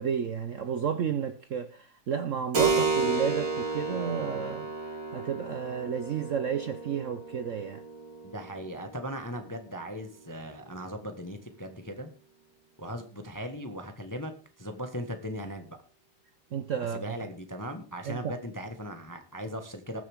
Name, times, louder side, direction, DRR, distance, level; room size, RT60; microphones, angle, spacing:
voice 1, 0.0-4.7 5.1-7.8 16.5-17.0 18.0-18.4, right 7 dB, 90° right, 0.6 m, -31 dB
Keyboard (musical), 2.5-10.7, right 4 dB, 55° right, 3.4 m, -32 dB
voice 2, 8.2-12.1 12.8-14.3 14.6-15.8 16.8-20.0, equal, 10° left, 1.0 m, -38 dB
20.0 x 7.9 x 3.6 m
omnidirectional pair, 2.3 m